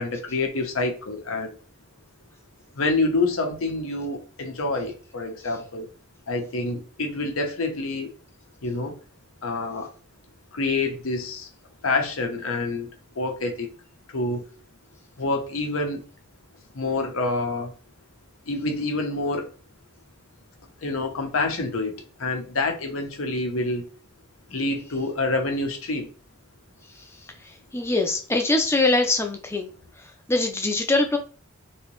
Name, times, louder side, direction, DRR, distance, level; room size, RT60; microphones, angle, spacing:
voice 1, 0.0-1.5 2.7-5.9 6.3-8.1 8.6-8.9 9.4-9.9 10.5-11.5 11.8-12.9 13.2-13.7 14.1-14.4 15.2-16.0 16.7-17.7 18.5-19.5 20.8-21.9 22.2-23.9 24.5-26.1, left 2 dB, 90° left, 0.8 m, -27 dB
voice 2, 27.7-29.7 30.3-31.2, left 2 dB, 15° left, 0.5 m, -22 dB
3.1 x 2.8 x 3.0 m
head